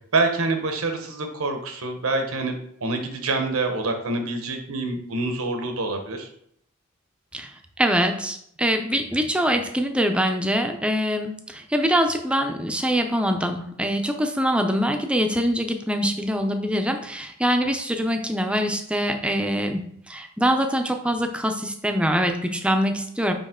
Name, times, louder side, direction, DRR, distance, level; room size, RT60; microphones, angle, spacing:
voice 1, 0.1-6.3, right 3 dB, 80° right, 5 dB, 1.1 m, -26 dB
voice 2, 7.8-19.8 20.1-23.3, equal, 5° right, 5 dB, 0.5 m, -24 dB
5.4 x 5.0 x 3.7 m, 0.68 s
head